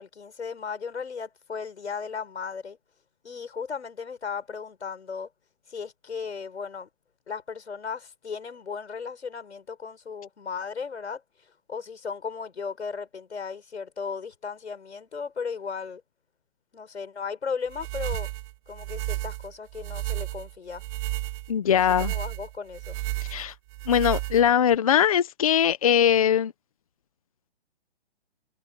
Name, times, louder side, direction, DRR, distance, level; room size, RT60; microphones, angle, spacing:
voice 1, 0.0-2.8 3.2-5.3 5.7-6.9 7.3-11.2 11.7-16.0 16.7-18.3 18.7-20.8 21.7-23.0, left 5 dB, 85° left, 6.6 m, -36 dB
sound 1, 17.7-24.8, right 17 dB, 15° right, 1.3 m, -33 dB
voice 2, 21.5-22.1 23.3-23.5 23.9-26.5, left 9 dB, 35° left, 0.9 m, -21 dB
hypercardioid pair, 170°, 33 cm